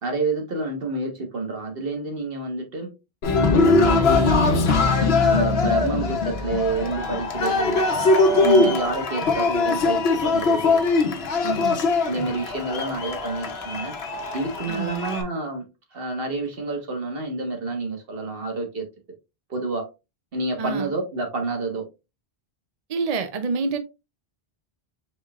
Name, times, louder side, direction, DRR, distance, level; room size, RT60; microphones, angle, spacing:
voice 1, 0.0-2.9 3.3-4.7 5.2-7.8 8.4-10.8 12.1-13.9 14.3-15.7 15.9-18.8 19.5-19.9 20.3-21.8, right 3 dB, 65° right, 1.6 m, -28 dB
Cheering, 3.2-15.2, left 3 dB, 80° left, 1.1 m, -21 dB
voice 2, 8.4-8.8 11.4-11.8 14.7-15.1 20.6-20.9 22.9-23.8, right 4 dB, 45° right, 0.6 m, -27 dB
5.2 x 4.0 x 2.4 m
omnidirectional pair, 1.0 m